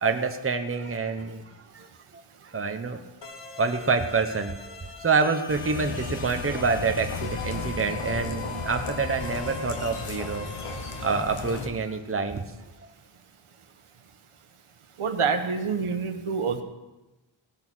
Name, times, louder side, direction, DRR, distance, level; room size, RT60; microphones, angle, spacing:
voice 1, 0.0-1.4 1.7-1.9 2.5-3.0 3.6-10.5 11.0-12.4, right 4 dB, 25° right, 6 dB, 1.0 m, -27 dB
sound 1, 3.2-11.2, left 2 dB, 60° left, 1.8 m, -41 dB
sound 2, 5.5-11.7, left 4 dB, 85° left, 1.4 m, -35 dB
voice 2, 15.0-16.6, right 5 dB, 85° right, 6 dB, 1.3 m, -27 dB
18.0 x 6.8 x 6.2 m, 1.1 s
wide cardioid pair, 100°, 50 cm